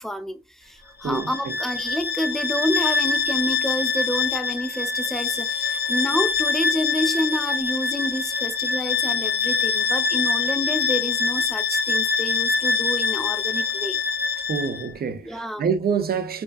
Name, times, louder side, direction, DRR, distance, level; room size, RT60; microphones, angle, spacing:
voice 1, 0.0-14.0 15.2-15.7, equal, ahead, 0.3 m, -29 dB
Bowed string instrument, 1.0-14.9, left 5 dB, 75° left, 0.4 m, -24 dB
voice 2, 1.0-1.5 14.5-16.4, right 6 dB, 75° right, 0.4 m, -26 dB
2.5 x 2.3 x 2.3 m
wide cardioid pair, 110°, 16 cm